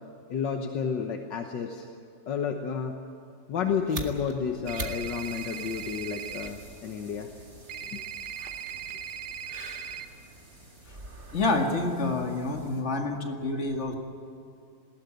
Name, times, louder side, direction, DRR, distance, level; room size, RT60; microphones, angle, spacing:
voice 1, 0.3-1.9 2.3-3.0 3.5-7.3 7.9-8.0, left 6 dB, 75° left, 4 dB, 1.8 m, -31 dB
sound 1, 3.5-12.7, right 2 dB, 30° right, 2.1 m, -45 dB
sound 2, 4.6-12.8, right 1 dB, 50° right, 5.8 m, -51 dB
sound 3, 4.7-6.5 7.7-10.0, right 9 dB, 65° right, 1.4 m, -38 dB
voice 2, 11.3-13.9, left 2 dB, 40° left, 3 dB, 2.3 m, -28 dB
20.0 x 18.0 x 9.3 m, 2.7 s
omnidirectional pair, 1.9 m